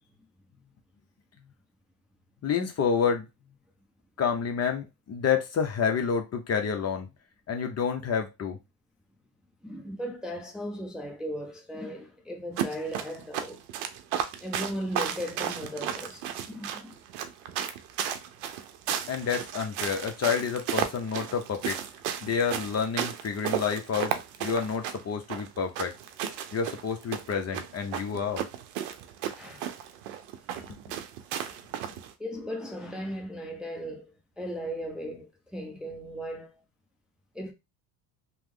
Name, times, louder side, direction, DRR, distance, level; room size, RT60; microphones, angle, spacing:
voice 1, 2.4-3.3 4.2-7.1 7.5-8.6 19.1-21.8 22.2-24.1 24.4-25.9 26.5-28.4 30.7-30.8 31.8-31.9, left 6 dB, 35° left, 0.7 m, -29 dB
voice 2, 9.6-13.6 14.4-16.9 29.4-29.7 30.6-30.7 32.2-36.6 37.3-37.5, equal, ahead, 0.6 m, -37 dB
sound 1, 12.6-32.1, right 9 dB, 80° right, 0.7 m, -34 dB
3.0 x 2.1 x 3.6 m
supercardioid pair, 90°, 46 cm